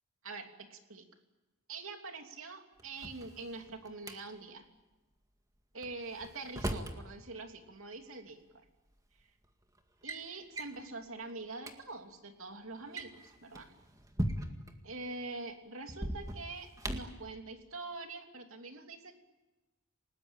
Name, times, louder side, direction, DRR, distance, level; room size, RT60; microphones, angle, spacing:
voice 1, 0.2-1.0 1.7-4.7 5.7-8.6 10.0-13.7 14.8-19.2, right 3 dB, 65° right, 5 dB, 2.9 m, -45 dB
Drawer open or close, 2.8-4.2 5.8-7.0 8.3-8.4 9.2-9.5 9.8-10.2 10.6-10.8 11.3-11.4 11.6-11.8 12.8-14.7 15.9-17.2, right 1 dB, 15° right, 2.0 m, -39 dB
29.5 x 19.5 x 9.0 m, 1.1 s
head